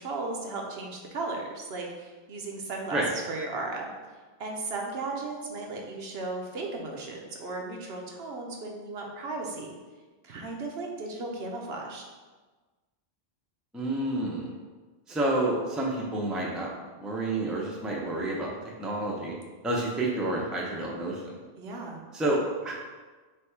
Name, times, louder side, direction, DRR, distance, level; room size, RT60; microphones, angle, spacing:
voice 1, 0.0-3.9 4.4-9.8 10.2-12.0 21.6-22.0, right 3 dB, 80° right, 0 dB, 1.0 m, -36 dB
voice 2, 13.7-14.5 15.1-16.7 17.0-18.5 18.8-19.3 19.6-21.2 22.1-22.7, right 2 dB, ahead, -3 dB, 0.5 m, -29 dB
3.4 x 3.1 x 4.5 m, 1.3 s
omnidirectional pair, 1.0 m